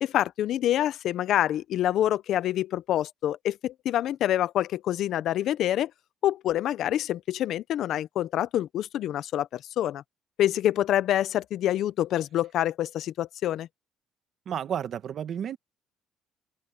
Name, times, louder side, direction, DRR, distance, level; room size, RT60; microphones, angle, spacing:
voice 1, 0.0-5.9 6.2-10.0 10.4-13.7, left 12 dB, 60° left, 0.5 m, -26 dB
voice 2, 14.4-15.6, right 8 dB, 45° right, 1.1 m, -31 dB
open air
cardioid pair, 155°, 0 cm